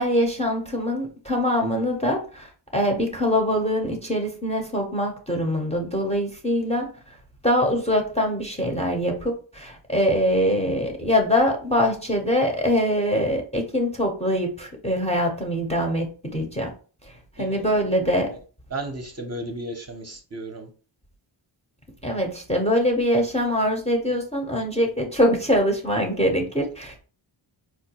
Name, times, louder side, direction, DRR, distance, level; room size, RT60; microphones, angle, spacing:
voice 1, 0.0-6.9 7.4-16.7 17.4-18.4 22.0-27.0, equal, 15° left, 1 dB, 0.6 m, -23 dB
voice 2, 18.7-20.7, right 2 dB, 35° right, 3 dB, 0.6 m, -34 dB
4.5 x 2.2 x 2.8 m, 0.38 s
wide cardioid pair, 115°, 47 cm